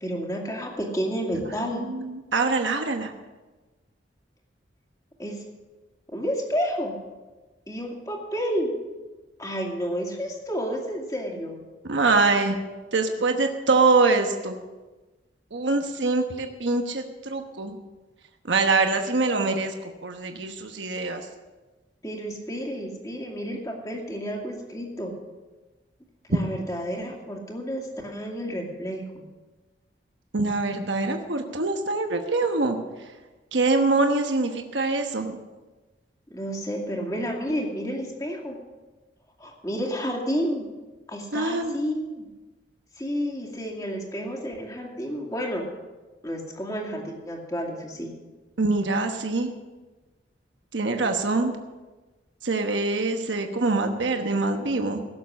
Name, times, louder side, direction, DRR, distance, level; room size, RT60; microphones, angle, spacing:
voice 1, 0.0-1.8 5.2-5.4 6.1-6.9 7.7-8.7 9.4-11.6 22.0-25.1 26.3-29.3 36.3-38.6 39.4-40.6 41.1-42.3 43.0-45.7 46.2-48.1, equal, 20° left, 0 dB, 2.4 m, -30 dB
voice 2, 1.5-3.1 11.8-12.6 12.9-14.5 15.5-17.8 18.5-19.7 20.0-21.3 30.3-32.8 33.5-35.4 41.3-41.8 48.6-49.5 50.7-51.6 52.4-55.0, right 3 dB, 90° right, 5 dB, 1.1 m, -24 dB
17.0 x 7.2 x 6.4 m, 1.2 s
head